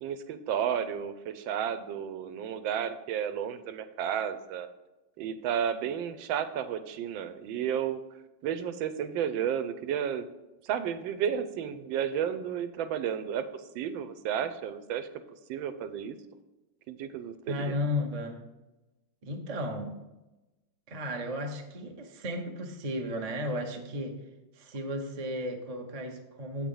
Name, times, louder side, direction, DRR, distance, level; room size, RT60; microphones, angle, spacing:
voice 1, 0.0-4.7 5.2-8.0 8.4-10.3 10.6-13.5 13.7-15.1 15.5-16.2 16.9-17.7, right 8 dB, 85° right, 10 dB, 1.4 m, -32 dB
voice 2, 17.5-18.4 19.2-20.0 20.9-24.2 24.5-26.7, left 1 dB, 60° right, 3 dB, 0.3 m, -34 dB
7.5 x 4.6 x 5.4 m, 1.0 s
omnidirectional pair, 2.1 m